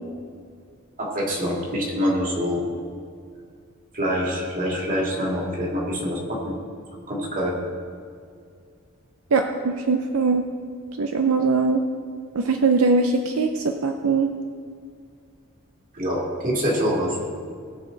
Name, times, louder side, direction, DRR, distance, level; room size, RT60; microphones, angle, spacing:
voice 1, 1.0-2.6 3.9-6.5 7.1-7.6 15.9-17.2, equal, 40° right, -2 dB, 2.4 m, -25 dB
voice 2, 9.3-10.4 11.0-11.8 12.3-14.3, right 4 dB, 80° right, 5 dB, 0.6 m, -21 dB
18.0 x 6.6 x 3.9 m, 2.2 s
head